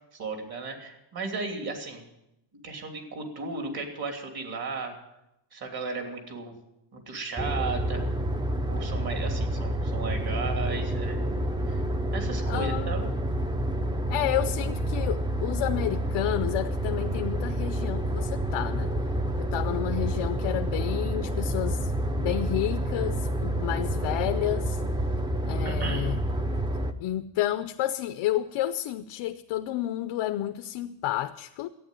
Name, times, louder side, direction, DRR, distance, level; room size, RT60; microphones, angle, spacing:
voice 1, 0.1-2.1 2.6-4.9 5.5-6.5 6.9-8.0 8.6-11.3 11.7-11.8 12.1-13.1 25.6-26.1, right 4 dB, 50° right, 3.0 m, -35 dB
sound 1, 7.4-26.9, right 1 dB, 10° right, 0.6 m, -29 dB
voice 2, 12.5-12.9 14.1-18.9 19.4-24.8 25.5-26.2 27.0-31.7, left 13 dB, 90° left, 0.7 m, -30 dB
13.5 x 9.2 x 8.9 m
cardioid pair, 160°, 47 cm